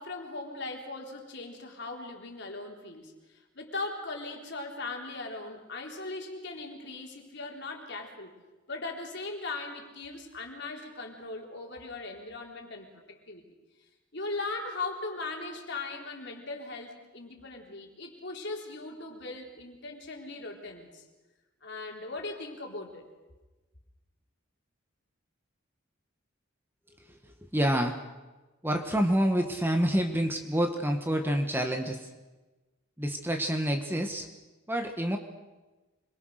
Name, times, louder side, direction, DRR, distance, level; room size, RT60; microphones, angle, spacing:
voice 1, 0.0-8.3 8.7-13.4 14.1-21.1 21.6-23.1, left 3 dB, 55° left, 1 dB, 3.9 m, -39 dB
voice 2, 27.0-28.0 28.6-32.1 33.0-34.3 34.7-35.2, equal, 10° right, 5 dB, 1.5 m, -28 dB
26.0 x 22.5 x 6.6 m, 1.2 s
head